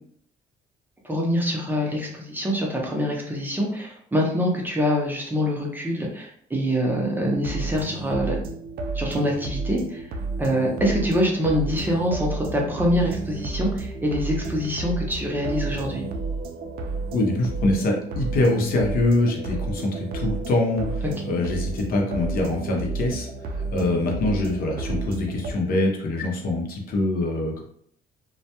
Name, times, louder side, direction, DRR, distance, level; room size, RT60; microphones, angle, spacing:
voice 1, 1.0-8.4 8.9-10.0 10.4-16.0, equal, 10° right, -2 dB, 0.6 m, -25 dB
sound 1, 7.3-25.5, right 3 dB, 65° right, 0.4 m, -31 dB
voice 2, 17.1-23.3 23.7-27.6, left 2 dB, 60° left, 0 dB, 0.7 m, -24 dB
2.2 x 2.1 x 2.8 m, 0.65 s
cardioid pair, 110°, 17 cm